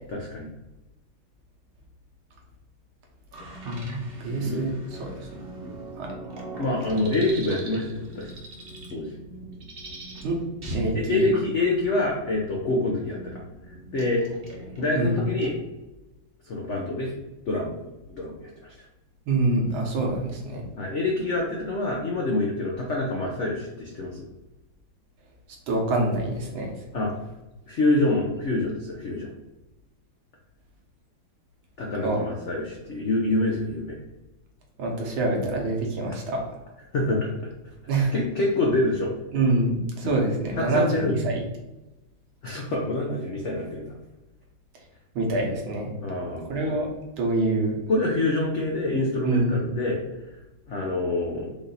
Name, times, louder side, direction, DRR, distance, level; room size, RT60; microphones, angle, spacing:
voice 1, 0.1-0.5 4.3-4.6 5.6-5.8 6.6-8.3 8.9-9.1 10.9-13.3 13.7-14.2 14.8-15.6 16.4-17.1 17.5-17.7 18.1-18.7 20.8-24.3 26.9-27.1 27.7-29.3 31.8-34.0 36.9-37.5 38.0-39.1 40.5-41.2 42.4-43.9 46.0-46.6 47.9-50.0 50.7-51.5, left 2 dB, 70° left, -1 dB, 0.6 m, -26 dB
sound 1, 3.3-15.6, right 2 dB, 45° right, 0.8 m, -40 dB
voice 2, 3.7-4.7 5.0-5.3 6.0-6.1 10.2-10.4 10.7-11.3 14.9-15.2 19.3-20.6 25.7-26.7 32.0-32.2 34.8-36.4 37.9-38.1 39.3-41.4 45.2-45.9 46.5-46.9 47.2-47.8 49.2-49.7, right 2 dB, 80° right, 0 dB, 1.9 m, -25 dB
4.9 x 2.6 x 4.0 m, 1.0 s
omnidirectional pair, 2.2 m